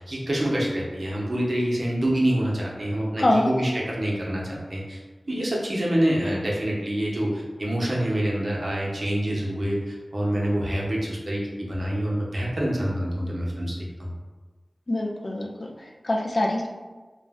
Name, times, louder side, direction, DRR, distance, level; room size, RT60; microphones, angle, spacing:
voice 1, 0.0-5.0 5.3-14.1, right 1 dB, 55° right, -4 dB, 0.6 m, -26 dB
voice 2, 3.2-3.5 14.9-16.7, left 1 dB, 60° left, 0 dB, 0.3 m, -24 dB
2.4 x 2.0 x 3.4 m, 1.3 s
wide cardioid pair, 55°, 0 cm